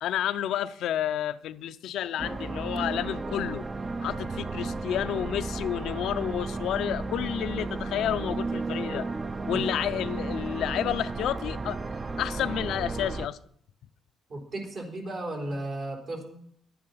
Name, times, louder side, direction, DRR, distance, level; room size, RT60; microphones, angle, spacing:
voice 1, 0.0-3.6 4.0-9.1 9.5-11.8 12.2-13.4, left 11 dB, 80° left, 0.5 m, -30 dB
sound 1, 2.2-13.3, right 3 dB, 25° right, 0.6 m, -33 dB
voice 2, 14.3-16.2, right 1 dB, 60° right, 3.9 m, -35 dB
11.0 x 9.5 x 5.6 m
cardioid pair, 90°, 0 cm